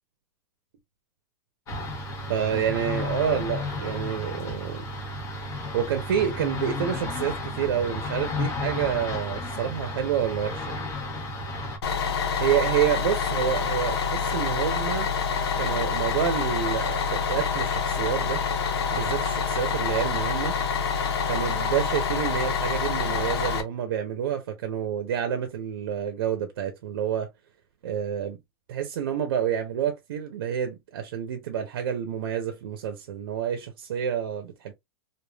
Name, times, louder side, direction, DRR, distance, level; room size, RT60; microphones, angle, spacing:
sound 1, 1.7-11.8, left 2 dB, 25° left, 1.0 m, -33 dB
voice 1, 2.3-4.8 5.7-10.8 12.4-15.1 15.6-18.4 18.9-20.5 21.3-27.3 27.8-28.4 28.7-34.7, right 9 dB, 75° right, 0.8 m, -28 dB
Bus, 11.8-23.6, left 6 dB, 85° left, 0.9 m, -27 dB
3.3 x 2.4 x 2.3 m
supercardioid pair, 165°, 13 cm